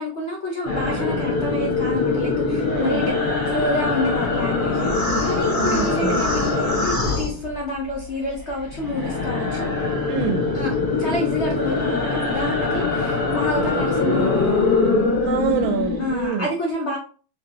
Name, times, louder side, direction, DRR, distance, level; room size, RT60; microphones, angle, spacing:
voice 1, 0.0-3.2 3.5-4.9 5.2-9.7 10.5-14.6 16.0-17.0, left 1 dB, 75° left, -2 dB, 0.6 m, -28 dB
sound 1, 0.6-8.0 8.3-16.3, left 3 dB, 30° left, 1.2 m, -23 dB
voice 2, 2.6-3.0 5.6-6.2 10.1-10.5 15.3-16.5, right 7 dB, 75° right, 9 dB, 1.3 m, -26 dB
3.9 x 3.2 x 2.8 m, 0.39 s
omnidirectional pair, 2.3 m